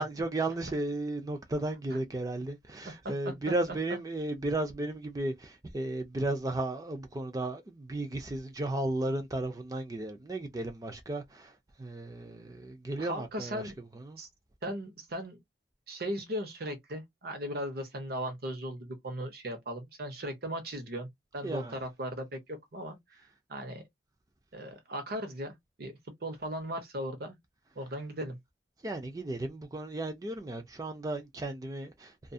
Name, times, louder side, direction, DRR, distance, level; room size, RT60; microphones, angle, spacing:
voice 1, 0.0-11.5 11.8-13.6 14.0-14.2 21.4-21.8 28.8-32.3, right 2 dB, 20° right, 0.4 m, -34 dB
voice 2, 3.0-3.5 3.9-4.0 13.0-13.8 14.2-14.3 14.6-15.4 15.9-21.1 21.3-23.2 23.5-23.8 24.5-25.9 26.2-27.4 27.8-28.4, equal, 60° right, 0.8 m, -37 dB
2.6 x 2.4 x 2.3 m
head